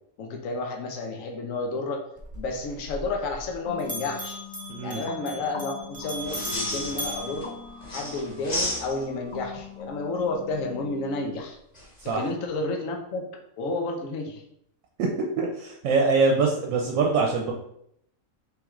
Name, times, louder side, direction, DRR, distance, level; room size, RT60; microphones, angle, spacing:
voice 1, 0.2-2.0 2.3-4.4 4.8-7.5 7.9-11.6 12.0-13.3 13.6-14.4, left 3 dB, 75° left, 2 dB, 1.1 m, -31 dB
Bell, 2.2-3.5 3.8-8.3, equal, 5° right, 0.9 m, -38 dB
sound 1, 3.7-11.2, left 8 dB, 55° left, 0.6 m, -43 dB
voice 2, 4.7-5.0 12.0-12.2 15.0-15.1 15.4-17.5, right 4 dB, 75° right, 0 dB, 0.9 m, -23 dB
sound 2, 6.2-7.4 7.8-9.2 11.7-12.1, left 1 dB, 35° left, 1.1 m, -33 dB
3.5 x 3.5 x 3.0 m, 0.73 s
omnidirectional pair, 1.4 m